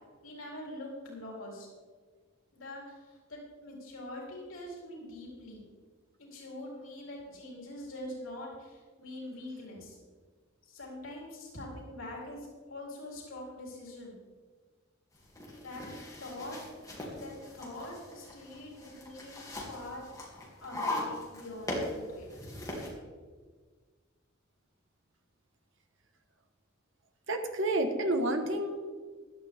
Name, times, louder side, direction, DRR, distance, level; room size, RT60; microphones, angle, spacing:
voice 1, 0.2-1.7 2.5-5.7 6.2-10.0 10.7-14.2 15.6-15.8 16.2-16.6 17.2-19.4 19.7-20.0 20.6-22.3, left 1 dB, 80° left, -3 dB, 4.0 m, -44 dB
sound 1, 15.2-22.9, left 1 dB, 20° left, 2.7 m, -40 dB
voice 2, 27.3-28.9, right 1 dB, 65° right, 5 dB, 1.5 m, -30 dB
15.5 x 12.0 x 3.7 m, 1.5 s
head